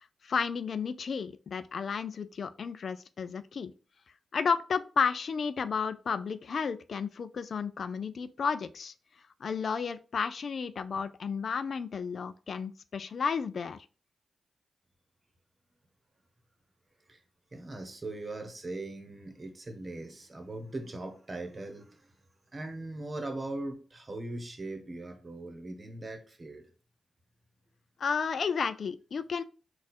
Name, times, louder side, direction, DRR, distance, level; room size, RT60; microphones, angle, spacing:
voice 1, 0.0-3.7 4.3-8.9 9.4-13.8 28.0-29.4, left 6 dB, 65° left, 13 dB, 0.3 m, -32 dB
voice 2, 17.5-22.1 22.5-26.7, right 2 dB, 40° right, 6 dB, 1.1 m, -40 dB
4.1 x 2.4 x 4.2 m, 0.37 s
supercardioid pair, 40°, 0 cm